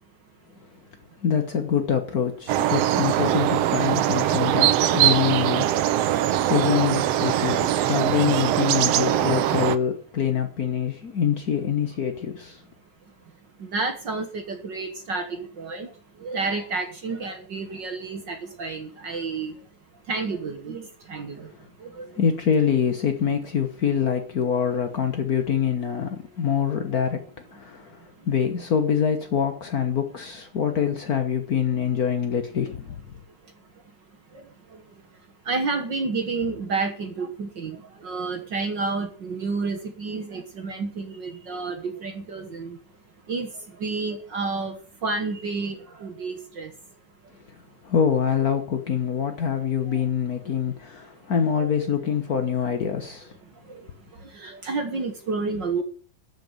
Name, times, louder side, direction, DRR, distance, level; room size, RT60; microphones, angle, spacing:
voice 1, 1.2-6.2 6.5-12.6 22.2-27.2 27.5-28.0 28.3-32.9 47.8-53.3, left 7 dB, 75° left, 0.8 m, -25 dB
sound 1, 2.5-9.8, right 12 dB, 75° right, 1.5 m, -22 dB
voice 2, 13.6-19.7 20.1-22.2 28.2-28.3 33.3-33.8 34.1-42.8 43.3-46.7 49.8-50.1 51.4-51.7 53.4-55.8, right 4 dB, 50° right, 1.6 m, -31 dB
13.0 x 6.1 x 8.9 m
omnidirectional pair, 3.5 m